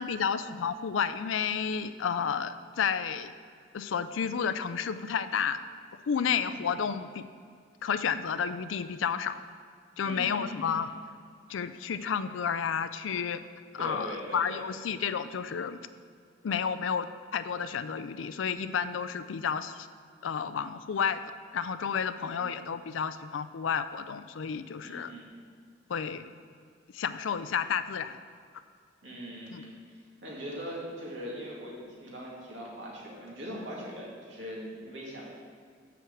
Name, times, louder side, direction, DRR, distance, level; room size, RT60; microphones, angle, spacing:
voice 1, 0.0-3.3 3.7-5.6 6.1-7.3 7.8-9.4 10.0-10.9 11.5-13.4 13.7-15.8 16.4-17.1 17.3-19.9 20.2-21.2 21.5-25.1 25.9-26.2 26.9-28.2 29.5-29.6, left 7 dB, 90° left, 12 dB, 0.4 m, -31 dB
voice 2, 10.0-10.8 13.8-14.7 22.3-22.5 24.8-25.3 29.0-29.7 30.2-35.3, equal, 70° right, -4 dB, 2.1 m, -41 dB
6.1 x 5.8 x 7.2 m, 2.1 s
head